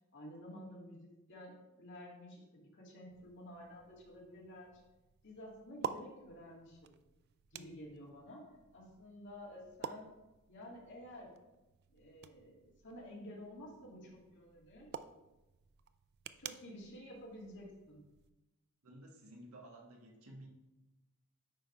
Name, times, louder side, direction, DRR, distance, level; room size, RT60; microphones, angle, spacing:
voice 1, 0.1-4.8 5.2-6.9 7.5-8.4 8.7-10.1 10.5-11.3 11.9-14.9 16.4-18.0, equal, 55° left, -3 dB, 2.0 m, -51 dB
sound 1, 3.1-18.3, right 7 dB, 50° right, 0.3 m, -51 dB
voice 2, 18.8-20.5, right 1 dB, 75° right, 0 dB, 1.4 m, -54 dB
8.9 x 3.4 x 5.3 m, 1.0 s
head